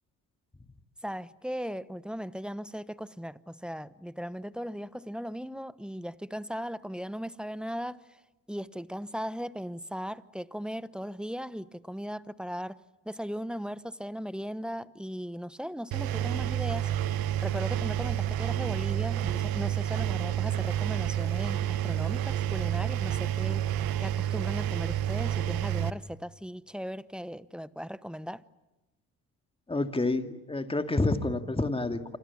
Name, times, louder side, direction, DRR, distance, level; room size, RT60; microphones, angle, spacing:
voice 1, 1.0-8.2 8.5-12.8 13.0-16.9 17.4-23.7 24.0-28.4, equal, ahead, 1.0 m, -37 dB
Engine, 15.9-25.9, right 11 dB, 75° right, 1.3 m, -29 dB
voice 2, 29.7-32.0, left 2 dB, 15° left, 2.3 m, -28 dB
29.0 x 26.0 x 7.2 m
supercardioid pair, 70°, 36 cm